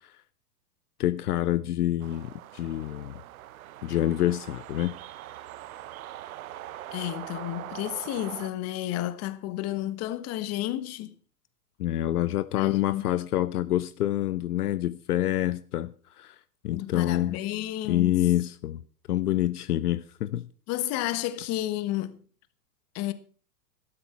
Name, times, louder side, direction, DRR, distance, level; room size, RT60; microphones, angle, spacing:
voice 1, 1.0-3.2 3.8-5.0 11.8-16.3 16.6-17.4 17.9-18.8 19.1-20.5, left 13 dB, 70° left, 0.8 m, -27 dB
sound 1, 2.0-8.5, right 13 dB, 60° right, 1.0 m, -42 dB
voice 2, 6.9-11.1 12.5-13.0 16.7-18.2 20.7-22.2 22.9-23.1, left 14 dB, 30° left, 1.3 m, -31 dB
13.0 x 12.0 x 4.6 m
hypercardioid pair, 120°, 48 cm